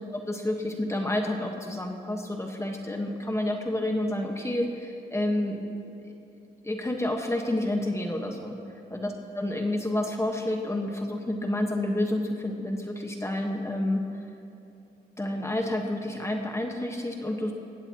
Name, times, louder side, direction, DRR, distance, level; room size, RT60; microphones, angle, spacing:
voice 1, 0.1-5.8 6.0-6.1 6.6-8.6 8.9-14.0 15.2-17.5, left 1 dB, 15° left, 2 dB, 1.3 m, -29 dB
20.5 x 16.0 x 3.0 m, 2.9 s
cardioid pair, 85°, 18 cm